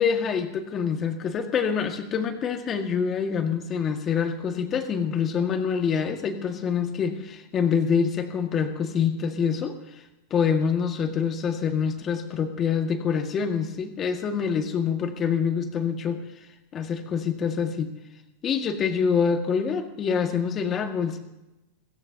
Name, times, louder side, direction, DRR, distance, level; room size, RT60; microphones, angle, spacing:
voice 1, 0.0-10.0 10.3-16.2 16.7-17.9 18.4-21.2, left 6 dB, 30° left, 5 dB, 1.8 m, -26 dB
22.0 x 16.0 x 2.9 m, 0.98 s
hypercardioid pair, 110°, 0 cm